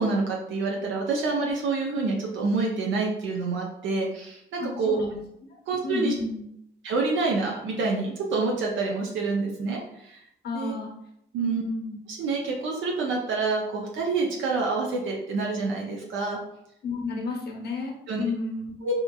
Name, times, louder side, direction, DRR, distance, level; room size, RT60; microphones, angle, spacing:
voice 1, 0.0-5.0 5.7-6.1 6.8-10.2 10.5-10.7 11.3-11.6 12.1-16.4 18.1-18.2 18.8-18.9, right 3 dB, 75° right, -1 dB, 0.5 m, -27 dB
voice 2, 4.6-5.2 5.8-6.5 10.4-10.9 11.4-11.9 16.8-18.7, left 3 dB, 55° left, 0 dB, 0.9 m, -31 dB
2.8 x 2.5 x 2.3 m, 0.77 s
cardioid pair, 90°, 20 cm